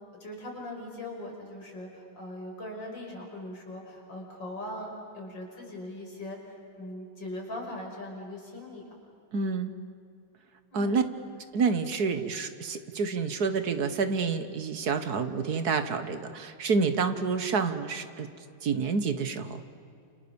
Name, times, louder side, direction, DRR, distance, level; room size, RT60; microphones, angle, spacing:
voice 1, 0.2-6.4 6.8-8.8 10.7-11.0, left 1 dB, 60° left, 0 dB, 6.3 m, -40 dB
voice 2, 9.3-9.7 10.7-11.0 11.5-18.3 18.6-19.6, right 5 dB, 55° right, 10 dB, 1.7 m, -28 dB
28.5 x 28.0 x 7.1 m, 2.6 s
omnidirectional pair, 2.2 m